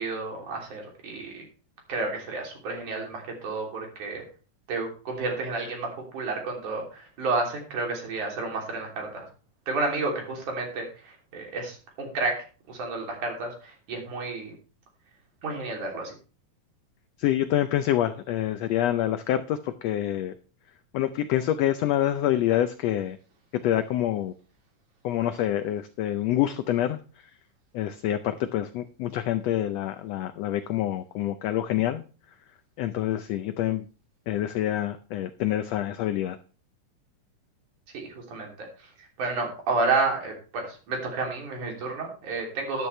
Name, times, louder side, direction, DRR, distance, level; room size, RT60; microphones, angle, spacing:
voice 1, 0.0-1.5 1.9-4.2 4.7-9.2 9.7-14.5 15.4-16.1 37.9-38.9 39.2-42.9, right 3 dB, 70° right, 1 dB, 4.6 m, -31 dB
voice 2, 17.2-20.3 20.9-23.2 23.5-24.3 25.0-27.0 27.7-32.0 32.8-33.9 34.3-36.4, left 12 dB, 85° left, 11 dB, 1.4 m, -26 dB
12.5 x 11.0 x 3.3 m, 0.36 s
omnidirectional pair, 3.7 m